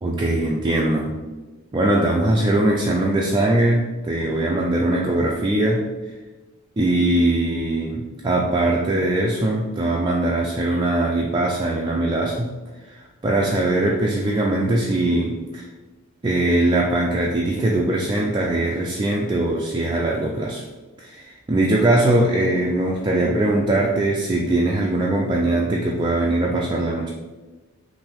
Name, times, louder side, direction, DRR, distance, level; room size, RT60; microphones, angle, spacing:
voice 1, 0.0-1.1 1.7-5.9 6.8-12.5 12.8-15.6 16.2-20.6 21.0-27.1, right 1 dB, 20° right, -2 dB, 0.4 m, -21 dB
5.7 x 2.7 x 3.4 m, 1.2 s
head